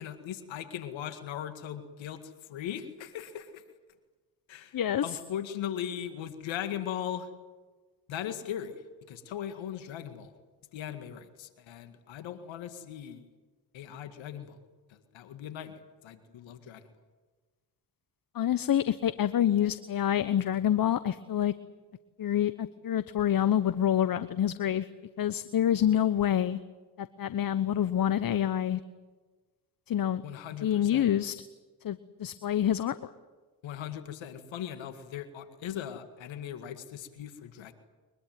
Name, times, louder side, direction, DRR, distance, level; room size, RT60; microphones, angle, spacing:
voice 1, 0.0-3.6 4.5-7.3 8.1-10.3 10.7-13.3 13.7-14.6 14.9-16.8 30.2-31.1 33.6-37.7, left 10 dB, 70° left, 9 dB, 2.1 m, -39 dB
voice 2, 4.7-5.0 18.3-21.5 22.2-24.9 25.2-26.6 27.0-28.8 29.9-30.2 30.6-31.4 31.8-33.0, left 10 dB, 45° left, 14 dB, 1.0 m, -27 dB
23.0 x 22.0 x 9.3 m, 1.3 s
supercardioid pair, 55°, 48 cm